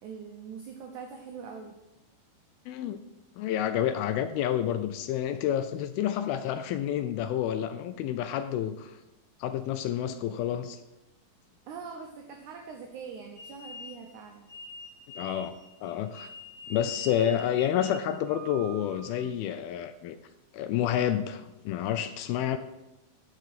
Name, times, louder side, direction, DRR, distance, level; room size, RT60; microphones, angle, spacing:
voice 1, 0.0-1.8 11.7-14.5, right 6 dB, 90° right, 1.7 m, -43 dB
voice 2, 2.7-3.0 3.4-9.0 9.4-10.8 15.2-15.6 15.8-16.3 16.7-20.2 20.5-22.6, left 10 dB, 80° left, 2.2 m, -29 dB
sound 1, 13.3-19.3, equal, 50° right, 2.4 m, -45 dB
6.7 x 6.4 x 7.4 m
omnidirectional pair, 4.6 m